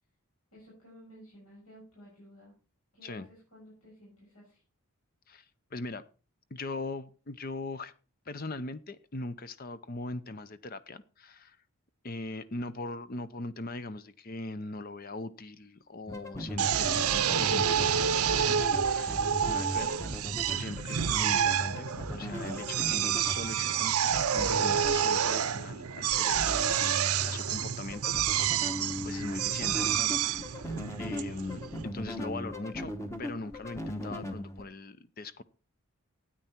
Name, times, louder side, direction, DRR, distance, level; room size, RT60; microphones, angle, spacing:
voice 1, 0.5-2.5 2.9-4.6, equal, 75° left, 6.7 m, -54 dB
voice 2, 5.3-6.1 6.5-7.9 8.3-11.6 12.0-19.2 19.5-19.9 20.3-28.2 29.0-30.6 31.0-32.9 33.2-35.4, left 2 dB, 40° left, 0.6 m, -40 dB
sound 1, 16.1-34.6, equal, 15° left, 1.0 m, -39 dB
Drill, 16.6-31.9, right 8 dB, 85° right, 0.7 m, -29 dB
13.0 x 9.1 x 4.4 m
head